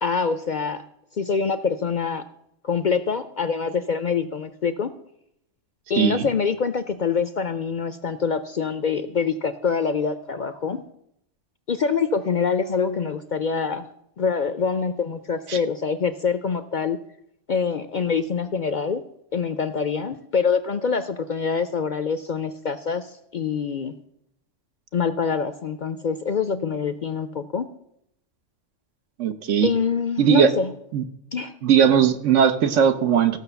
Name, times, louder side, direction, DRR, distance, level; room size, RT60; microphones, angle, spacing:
voice 1, 0.0-0.8 1.1-2.2 2.6-4.9 5.9-10.8 11.7-13.9 14.2-17.0 17.5-19.0 19.3-23.9 24.9-27.7 29.6-30.7 31.3-31.5, left 5 dB, 55° left, 12 dB, 0.5 m, -25 dB
voice 2, 6.0-6.3 15.5-15.6 29.2-29.7 30.2-30.5 30.9-31.0 31.6-33.4, right 8 dB, 80° right, 9 dB, 1.2 m, -18 dB
15.0 x 6.1 x 6.9 m, 0.78 s
omnidirectional pair, 1.2 m